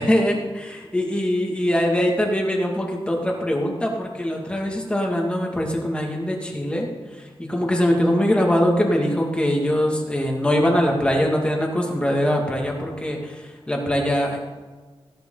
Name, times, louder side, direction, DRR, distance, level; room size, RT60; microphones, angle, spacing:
voice 1, 0.0-14.4, equal, 10° left, -1 dB, 2.1 m, -22 dB
16.0 x 11.0 x 3.9 m, 1.4 s
wide cardioid pair, 135°, 10 cm